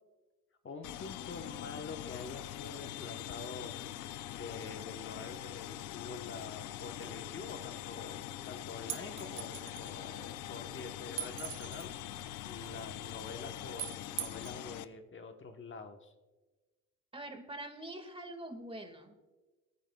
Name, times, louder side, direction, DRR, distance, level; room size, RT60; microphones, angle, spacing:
voice 1, 0.6-3.7 4.3-8.2 8.5-11.9 12.4-16.1, left 4 dB, 40° left, 5 dB, 1.2 m, -46 dB
sound 1, 0.8-14.8, left 13 dB, 85° left, 0.6 m, -43 dB
sound 2, 8.9-9.9 11.2-11.9 13.8-14.6, right 12 dB, 90° right, 1.0 m, -41 dB
voice 2, 17.1-19.3, right 1 dB, 20° right, 6 dB, 1.8 m, -44 dB
27.5 x 9.5 x 2.3 m, 1.2 s
cardioid pair, 90°, 30 cm